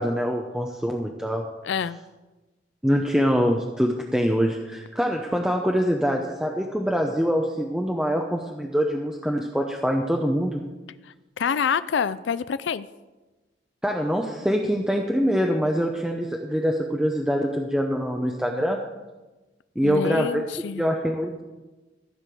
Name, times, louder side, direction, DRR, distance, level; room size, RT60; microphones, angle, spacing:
voice 1, 0.0-1.5 2.8-10.6 13.8-18.8 19.8-20.4 20.8-21.4, equal, 5° right, 1 dB, 0.7 m, -24 dB
voice 2, 1.6-2.0 11.4-12.9 19.8-20.9, left 7 dB, 85° left, 15 dB, 0.4 m, -26 dB
15.0 x 5.1 x 7.6 m, 1.2 s
head